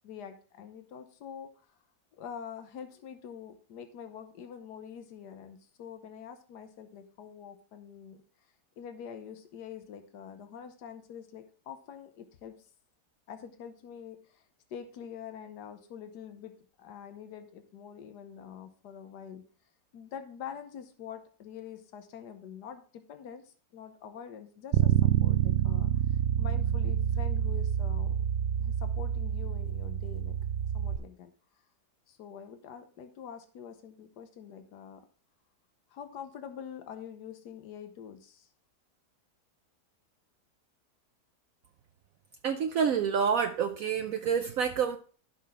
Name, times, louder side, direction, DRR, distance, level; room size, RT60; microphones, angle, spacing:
voice 1, 0.0-1.8 2.2-8.2 8.8-12.7 13.3-14.4 14.7-16.5 16.8-19.5 19.9-28.2 28.6-30.4 30.7-31.3 32.1-35.0 35.9-38.5, left 8 dB, 85° left, 7 dB, 1.5 m, -45 dB
Bass guitar, 24.7-31.0, right 10 dB, 80° right, 0.6 m, -27 dB
voice 2, 42.4-45.0, right 7 dB, 65° right, 7 dB, 1.0 m, -28 dB
11.5 x 5.9 x 3.6 m, 0.41 s
omnidirectional pair, 1.7 m